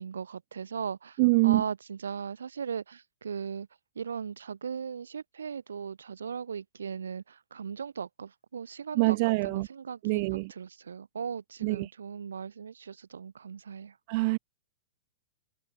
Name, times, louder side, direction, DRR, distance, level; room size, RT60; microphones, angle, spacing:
voice 1, 0.0-3.7 3.9-14.0, right 6 dB, 85° right, 3.3 m, -38 dB
voice 2, 1.2-1.6 9.0-9.7 10.0-10.5 11.6-11.9 14.1-14.4, right 27 dB, 50° right, 0.5 m, -24 dB
hypercardioid pair, 125°, 0 cm